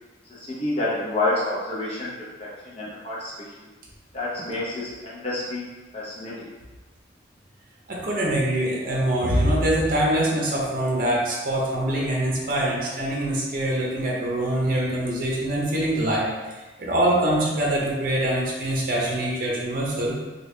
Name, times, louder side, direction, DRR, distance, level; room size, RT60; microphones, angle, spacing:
voice 1, 0.3-2.1 2.4-3.3 3.6-3.7 4.1-5.7 5.9-6.3, left 2 dB, 30° left, -7 dB, 0.7 m, -28 dB
voice 2, 7.9-16.3 16.8-20.2, right 1 dB, 45° right, -4 dB, 0.7 m, -24 dB
3.3 x 2.3 x 3.2 m, 1.2 s
head